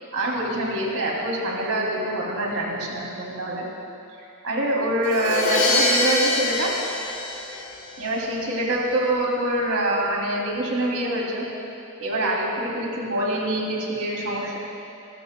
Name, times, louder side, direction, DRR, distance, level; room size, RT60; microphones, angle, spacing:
voice 1, 0.1-3.6 4.4-6.7 8.0-11.5 12.0-14.6, right 1 dB, 65° right, -3 dB, 2.9 m, -25 dB
Crash cymbal, 5.0-8.0, left 2 dB, 65° left, 3.9 m, -24 dB
29.0 x 13.0 x 2.3 m, 2.7 s
head